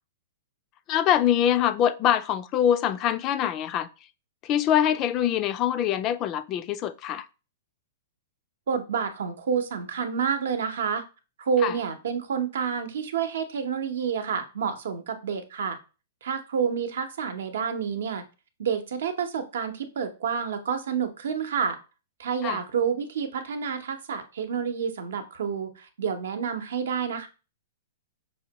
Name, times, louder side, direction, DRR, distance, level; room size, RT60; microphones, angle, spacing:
voice 1, 0.9-3.9 4.4-7.3 11.6-11.7 22.4-22.6, left 10 dB, 30° left, 0.3 m, -24 dB
voice 2, 8.7-11.0 11.4-15.8 16.2-18.2 18.6-21.8 22.2-27.3, right 7 dB, 75° right, 0.7 m, -29 dB
5.5 x 2.2 x 2.8 m
hypercardioid pair, 140°, 0 cm